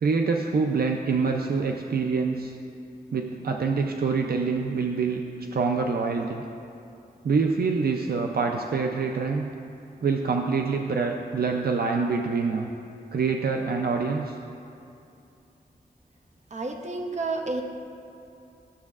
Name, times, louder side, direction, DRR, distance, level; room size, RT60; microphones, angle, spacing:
voice 1, 0.0-2.5 3.1-5.2 5.5-6.4 7.2-9.5 10.0-12.7 13.1-14.3, right 4 dB, 70° right, 2 dB, 0.4 m, -25 dB
voice 2, 16.5-17.6, right 3 dB, 45° right, 2 dB, 0.7 m, -30 dB
12.5 x 7.3 x 2.4 m, 2.7 s
wide cardioid pair, 95°, 16 cm